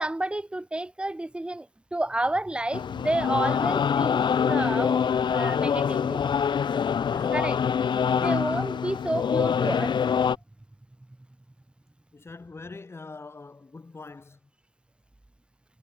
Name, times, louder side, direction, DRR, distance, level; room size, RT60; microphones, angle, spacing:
voice 1, 0.0-6.3 7.3-7.6 8.2-10.0, right 1 dB, 10° right, 1.3 m, -30 dB
sound 1, 2.7-10.4, left 7 dB, 70° left, 0.6 m, -25 dB
voice 2, 7.0-7.4 8.2-8.7 12.1-14.4, left 3 dB, 30° left, 2.4 m, -43 dB
wide cardioid pair, 150°, 8 cm